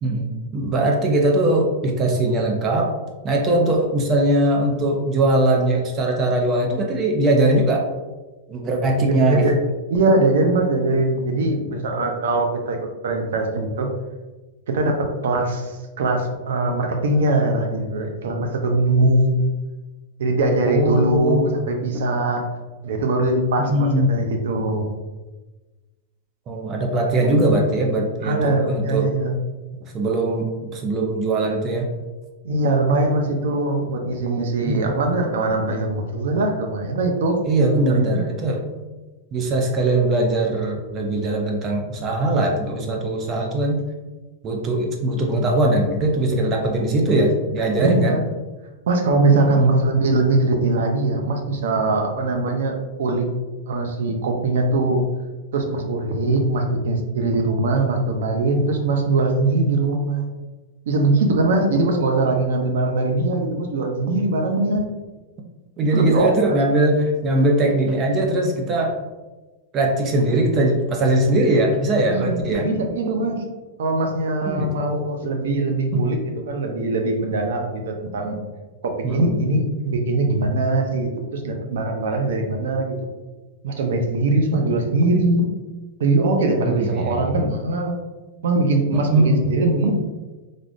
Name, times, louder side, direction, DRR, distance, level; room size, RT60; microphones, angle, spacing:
voice 1, 0.0-2.9 3.2-7.9 8.5-9.6 20.6-21.5 21.9-22.0 23.6-24.1 26.5-29.1 29.9-31.9 34.7-35.0 37.4-38.8 39.3-43.8 44.4-48.2 49.3-49.8 65.8-69.0 69.7-72.7 74.5-74.8 75.9-76.0 79.0-79.4 86.6-87.5 88.9-89.5, right 1 dB, 25° right, 2 dB, 0.4 m, -20 dB
voice 2, 9.0-9.6 9.9-12.8 13.0-13.9 14.7-19.4 20.2-22.4 22.8-25.0 28.2-29.3 32.4-37.4 37.7-38.2 47.8-48.2 48.9-52.7 53.0-53.3 53.7-55.0 55.5-60.2 60.9-64.8 65.9-66.6 72.1-73.4 73.8-78.4 78.8-82.9 83.6-85.5 86.0-88.0 88.4-89.9, right 2 dB, 85° right, 3 dB, 0.5 m, -21 dB
3.4 x 2.5 x 2.5 m, 1.2 s
supercardioid pair, 170°, 0 cm